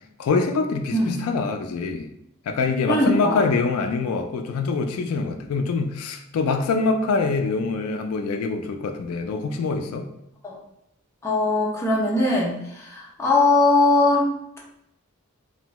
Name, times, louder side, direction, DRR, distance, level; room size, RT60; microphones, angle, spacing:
voice 1, 0.2-2.1 2.5-10.1, left 4 dB, 80° left, 6 dB, 0.3 m, -24 dB
voice 2, 2.9-3.4 10.4-10.6 11.2-14.3, left 2 dB, 10° left, -5 dB, 0.5 m, -20 dB
2.6 x 2.1 x 2.9 m, 0.81 s
head